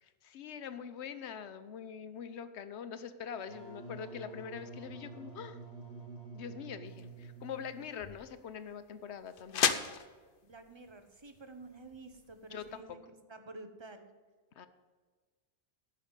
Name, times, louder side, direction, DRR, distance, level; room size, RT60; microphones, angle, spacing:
voice 1, 0.0-5.6 6.3-9.8 12.5-12.8 14.6-14.7, left 7 dB, 80° left, 11 dB, 1.1 m, -44 dB
Wind instrument woodwind instrument, 3.4-8.0, right 3 dB, 70° right, 2.6 m, -48 dB
sound 1, 6.9-12.8, left 7 dB, 60° left, 0.8 m, -38 dB
voice 2, 10.4-13.0 13.3-14.1, right 2 dB, 25° right, 8 dB, 1.0 m, -50 dB
11.5 x 5.6 x 8.9 m, 1.4 s
omnidirectional pair, 1.1 m